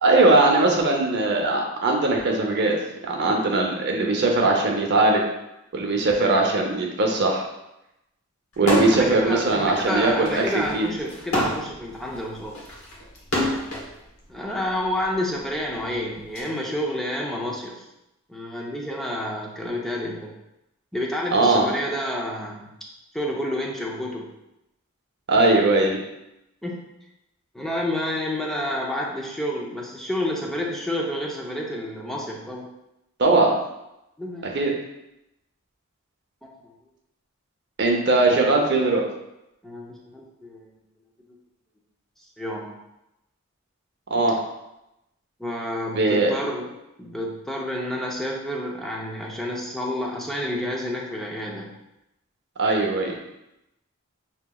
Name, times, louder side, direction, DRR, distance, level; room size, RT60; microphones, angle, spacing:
voice 1, 0.0-2.8 3.0-5.2 5.7-7.4 8.6-10.9 21.3-21.6 25.3-26.0 33.2-33.5 34.4-34.7 37.8-39.0 44.1-44.4 45.9-46.3 52.6-53.2, right 2 dB, 55° right, 1 dB, 0.7 m, -20 dB
sound 1, 8.6-9.1 9.5-13.9 14.8-16.4, left 1 dB, 85° left, 1.1 m, -27 dB
voice 2, 8.9-12.6 14.3-17.8 18.3-20.3 20.9-22.7 23.1-24.3 26.6-26.8 27.5-32.7 34.2-34.5 36.6-36.7 39.6-40.7 42.4-42.7 45.4-46.7 47.0-51.7, left 1 dB, ahead, -2 dB, 0.6 m, -29 dB
6.1 x 2.8 x 2.3 m, 0.89 s
head